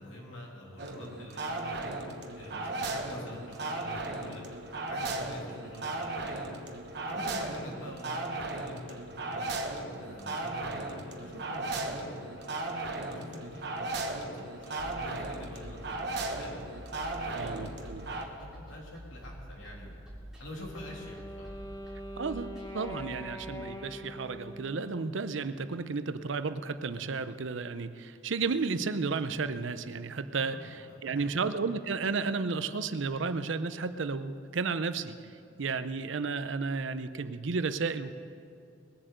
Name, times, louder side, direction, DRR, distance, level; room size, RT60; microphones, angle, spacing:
voice 1, 0.0-1.9 2.3-4.4 4.9-6.4 7.0-9.5 10.0-12.5 13.1-16.6 17.2-20.0 20.4-21.5 30.5-31.4, left 1 dB, 80° left, -1 dB, 3.0 m, -47 dB
sound 1, 0.8-18.3, right 2 dB, 55° right, 1.3 m, -36 dB
sound 2, 14.8-23.7, equal, 5° right, 2.8 m, -48 dB
voice 2, 17.3-18.1 22.2-35.2 35.6-38.1, right 4 dB, 75° right, 11 dB, 0.6 m, -33 dB
Wind instrument woodwind instrument, 20.7-25.7, equal, 15° left, 0.9 m, -44 dB
20.5 x 7.5 x 8.0 m, 2.4 s
head